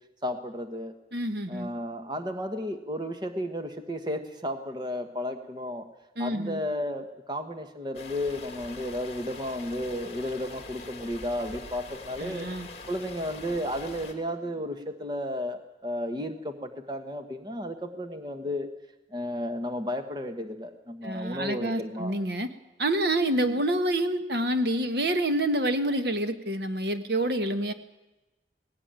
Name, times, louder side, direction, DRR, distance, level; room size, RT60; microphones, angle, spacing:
voice 1, 0.2-0.9 1.5-5.8 6.2-12.5 12.9-18.7 19.1-22.2 23.4-23.6, left 1 dB, 25° right, 7 dB, 1.3 m, -33 dB
voice 2, 1.1-1.7 6.2-6.6 12.2-12.7 21.0-22.5 22.8-27.7, right 1 dB, 65° right, 9 dB, 1.5 m, -27 dB
sound 1, 7.9-14.1, left 3 dB, 35° left, 2.6 m, -44 dB
19.0 x 17.0 x 9.0 m, 1.0 s
head